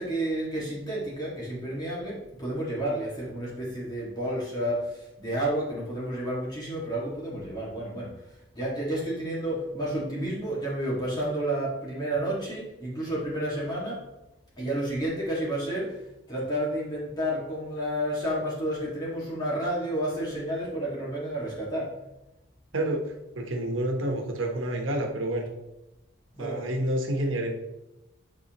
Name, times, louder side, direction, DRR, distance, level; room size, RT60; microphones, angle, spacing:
voice 1, 0.0-14.1 14.6-22.1 26.3-26.7, right 1 dB, 20° left, -7 dB, 2.0 m, -31 dB
voice 2, 23.4-25.5 26.4-27.5, right 1 dB, 85° right, 3 dB, 1.1 m, -28 dB
9.4 x 4.2 x 3.0 m, 0.97 s
head